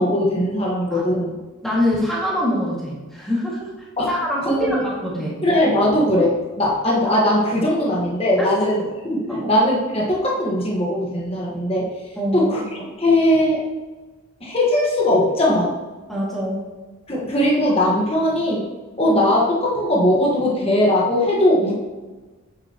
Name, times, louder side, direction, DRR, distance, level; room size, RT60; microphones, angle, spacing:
voice 1, 0.0-1.4 4.0-4.1 4.4-4.8 5.4-8.8 9.1-11.9 12.3-13.6 14.4-15.7 17.1-18.7 19.0-21.7, left 1 dB, 25° left, -4 dB, 1.4 m, -19 dB
voice 2, 1.6-5.4 8.4-8.5 9.3-9.5 12.2-12.5 16.1-16.6, left 1 dB, ahead, -6 dB, 2.0 m, -24 dB
8.8 x 8.2 x 3.0 m, 1.2 s
head